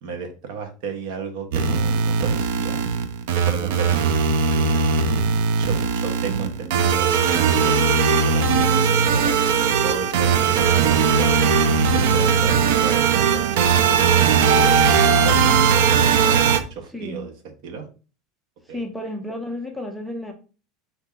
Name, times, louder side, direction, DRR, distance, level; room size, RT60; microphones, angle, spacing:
voice 1, 0.0-2.8 3.3-4.9 5.6-11.4 11.9-14.9 15.2-17.3 17.6-17.9 18.7-18.8, right 5 dB, 60° right, 5 dB, 1.1 m, -34 dB
sound 1, 1.5-16.6, right 6 dB, 75° right, 0.5 m, -19 dB
voice 2, 16.9-17.3 18.7-20.3, left 1 dB, ahead, 2 dB, 0.5 m, -32 dB
4.3 x 2.8 x 3.6 m, 0.35 s
cardioid pair, 170°, 0 cm